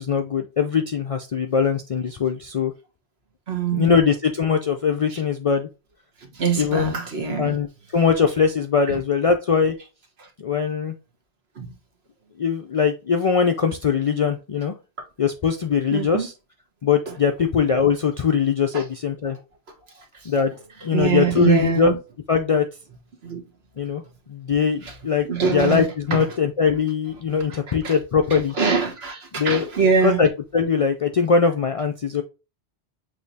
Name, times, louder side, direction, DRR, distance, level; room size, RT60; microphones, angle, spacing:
voice 1, 0.0-2.7 3.7-5.7 6.5-6.9 7.4-7.7 7.9-9.8 10.4-10.9 12.4-14.7 15.2-16.3 16.8-19.4 20.3-20.5 20.8-22.0 22.3-22.7 23.8-24.0 24.3-28.5 29.3-32.2, left 6 dB, 55° left, 0.4 m, -21 dB
voice 2, 3.5-3.9 6.3-7.5 11.6-11.7 15.9-16.3 18.7-18.8 20.9-21.9 23.2-23.4 25.3-25.8 26.1-26.2 27.8-27.9 28.3-30.2, right 6 dB, 75° right, 1.4 m, -23 dB
6.4 x 3.0 x 2.7 m
omnidirectional pair, 1.1 m